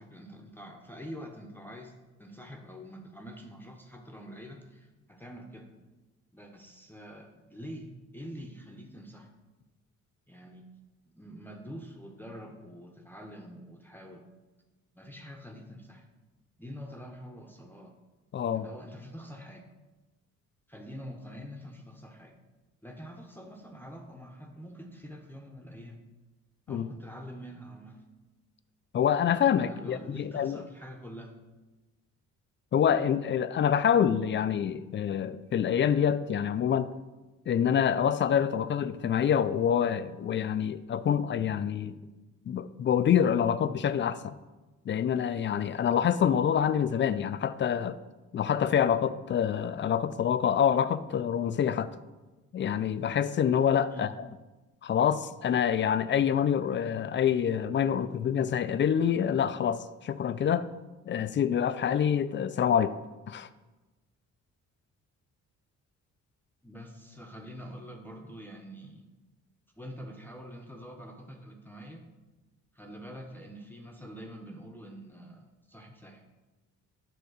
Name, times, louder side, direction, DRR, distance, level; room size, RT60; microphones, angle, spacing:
voice 1, 0.0-5.7 6.3-9.3 10.3-10.7 11.1-14.2 14.9-16.1 16.6-17.9 18.5-19.7 20.7-22.3 22.8-26.0 26.7-28.0 29.6-31.3 53.9-54.1 66.6-69.1 69.8-72.0 72.7-76.2, equal, 5° left, 0.8 m, -45 dB
voice 2, 18.3-18.7 26.7-26.9 28.9-30.6 32.7-36.9 37.5-42.0 42.5-44.3 44.9-48.0 48.3-51.9 52.5-54.1 54.8-60.7 61.1-63.0 63.3-63.5, left 8 dB, 40° left, 0.4 m, -26 dB
7.9 x 3.5 x 6.4 m
cardioid pair, 90°, 30 cm